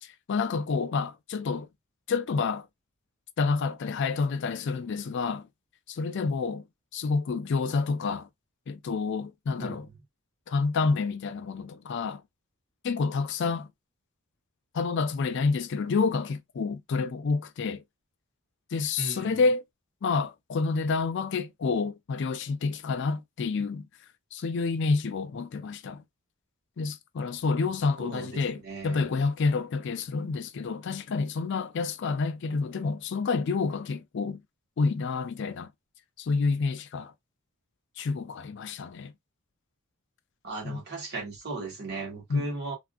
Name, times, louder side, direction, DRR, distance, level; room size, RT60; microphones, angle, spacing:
voice 1, 0.0-1.7 2.1-2.7 3.4-5.5 5.9-6.6 6.9-8.3 8.7-9.9 10.5-12.2 12.8-13.7 14.7-17.8 18.7-19.6 20.0-23.9 24.3-26.0 26.8-34.4 34.8-35.7 36.2-37.1 38.0-39.1 40.6-40.8 42.3-42.5, left 4 dB, 55° left, 0.4 m, -28 dB
voice 2, 19.0-19.5 28.0-29.0 40.4-42.7, right 3 dB, 50° right, 1.4 m, -37 dB
3.4 x 2.5 x 2.4 m
head